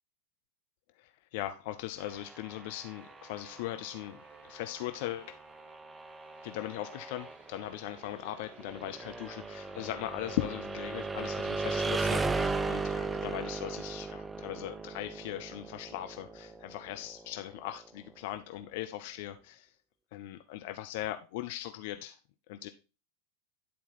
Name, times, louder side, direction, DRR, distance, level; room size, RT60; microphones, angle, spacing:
voice 1, 1.0-5.3 6.4-19.7 20.1-22.2 22.5-22.7, left 14 dB, 50° left, 9 dB, 0.5 m, -39 dB
sound 1, 2.0-17.8, right 3 dB, 10° right, 0.4 m, -37 dB
sound 2, 3.0-13.1, right 5 dB, 60° right, 2.7 m, -60 dB
10.5 x 4.2 x 4.0 m, 0.32 s
figure-of-eight pair, 90°, 0 cm